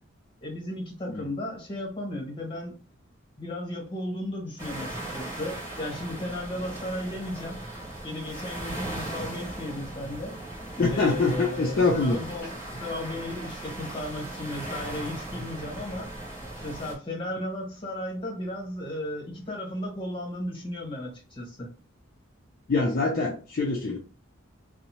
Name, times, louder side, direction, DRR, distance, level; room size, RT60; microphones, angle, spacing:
voice 1, 0.4-2.8 3.4-7.6 8.0-10.4 10.9-16.1 16.6-21.7, left 1 dB, 25° left, -2 dB, 1.0 m, -35 dB
sound 1, 4.6-16.9, right 1 dB, 15° right, 0.9 m, -38 dB
voice 2, 10.8-12.2 22.7-24.0, left 3 dB, 45° left, -1 dB, 0.4 m, -24 dB
2.6 x 2.0 x 2.9 m, 0.37 s
head